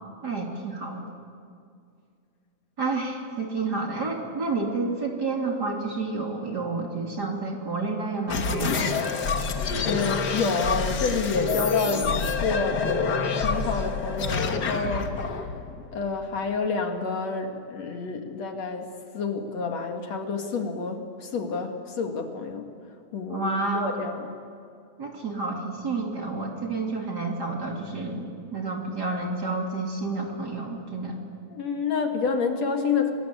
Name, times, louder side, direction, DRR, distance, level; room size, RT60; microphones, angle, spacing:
voice 1, 0.2-1.0 2.8-8.9 23.3-24.0 25.0-31.2, right 3 dB, 35° right, 1 dB, 3.1 m, -30 dB
sound 1, 8.3-16.5, left 5 dB, 45° left, 1.5 m, -27 dB
voice 2, 9.8-12.8 13.3-15.1 15.9-18.9 19.1-22.7 23.1-24.3 31.5-33.1, left 4 dB, 60° left, 4 dB, 3.0 m, -28 dB
25.5 x 21.0 x 9.8 m, 2.3 s
omnidirectional pair, 3.4 m